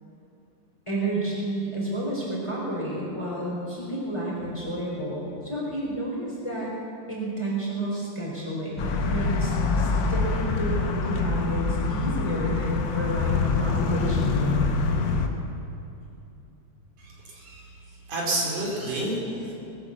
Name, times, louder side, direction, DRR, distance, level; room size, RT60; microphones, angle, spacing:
voice 1, 0.9-6.7 7.1-14.7, right 1 dB, 10° left, -5 dB, 3.6 m, -31 dB
sound 1, 8.8-15.3, left 4 dB, 80° left, 1.0 m, -25 dB
voice 2, 17.0-17.7 18.1-19.5, right 1 dB, 70° right, -3 dB, 4.4 m, -30 dB
20.5 x 8.8 x 7.1 m, 2.7 s
omnidirectional pair, 3.6 m